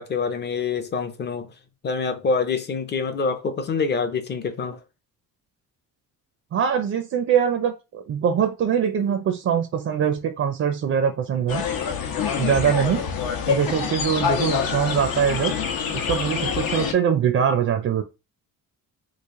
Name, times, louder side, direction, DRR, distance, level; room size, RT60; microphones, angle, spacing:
voice 1, 0.0-1.5 1.8-4.8, left 4 dB, 30° left, 0.5 m, -26 dB
voice 2, 6.5-11.6 12.4-13.0 13.5-15.6 15.9-18.0, right 8 dB, 40° right, 0.4 m, -23 dB
sound 1, 11.5-16.9, left 7 dB, 75° left, 0.8 m, -26 dB
3.2 x 2.4 x 3.5 m
cardioid pair, 160°, 35 cm